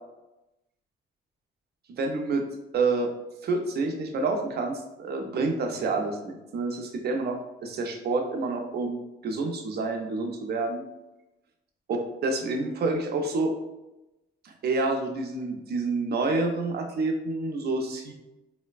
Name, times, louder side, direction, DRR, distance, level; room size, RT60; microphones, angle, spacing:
voice 1, 2.0-2.4 2.7-3.1 3.4-10.8 11.9-13.5 14.4-18.1, right 3 dB, 55° right, 4 dB, 0.5 m, -28 dB
3.2 x 2.1 x 2.3 m, 0.97 s
cardioid pair, 90°, 20 cm